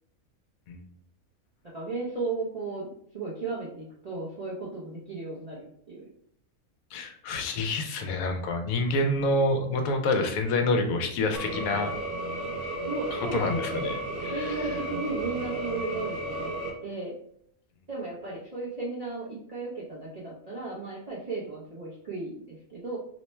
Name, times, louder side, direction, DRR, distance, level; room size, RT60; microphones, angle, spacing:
voice 1, 1.7-6.0 12.9-13.8 14.3-16.5 16.8-17.2 17.9-23.0, right 3 dB, 40° right, -7 dB, 0.6 m, -35 dB
voice 2, 6.9-11.9 13.3-14.0 14.2-14.7, left 2 dB, 85° left, 5 dB, 1.0 m, -27 dB
sound 1, 11.3-16.7, right 1 dB, 60° right, 1.1 m, -33 dB
3.1 x 2.1 x 4.2 m, 0.66 s
omnidirectional pair, 1.5 m